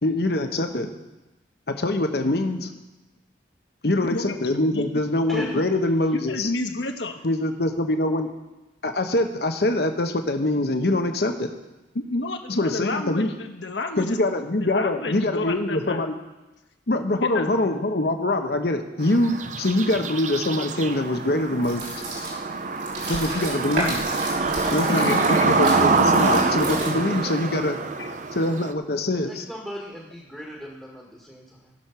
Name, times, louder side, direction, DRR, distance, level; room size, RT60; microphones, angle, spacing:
voice 1, 0.0-0.9 1.7-2.7 3.8-6.5 7.2-8.3 8.8-11.5 12.6-13.3 14.0-16.1 16.9-21.8 23.1-24.0 24.7-25.1 25.6-27.8 28.3-29.4, left 1 dB, 60° left, 6 dB, 1.0 m, -24 dB
voice 2, 4.0-4.3 4.7-5.0 5.3-5.6 6.1-7.2 11.9-14.2 14.6-16.1 17.2-17.5 24.9-25.6 28.0-28.1, left 2 dB, 85° left, 5 dB, 1.2 m, -30 dB
voice 3, 5.3-5.6 29.2-31.7, equal, ahead, -4 dB, 1.6 m, -37 dB
sound 1, 19.0-28.7, right 3 dB, 40° right, 0.6 m, -25 dB
sound 2, 21.5-27.2, right 1 dB, 75° right, 3.8 m, -33 dB
16.0 x 6.5 x 5.8 m, 1.1 s
head